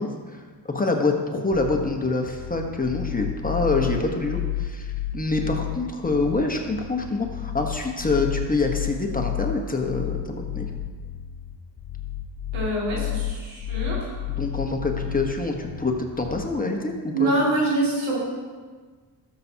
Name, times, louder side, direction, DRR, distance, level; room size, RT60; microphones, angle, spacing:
voice 1, 0.0-10.7 14.3-17.4, left 3 dB, 20° left, 2 dB, 1.2 m, -26 dB
sound 1, 1.5-16.5, left 12 dB, 40° left, 0.5 m, -31 dB
voice 2, 12.5-14.1 17.1-18.2, right 2 dB, 90° right, -4 dB, 2.6 m, -25 dB
13.0 x 7.0 x 2.9 m, 1.5 s
cardioid pair, 70°, 46 cm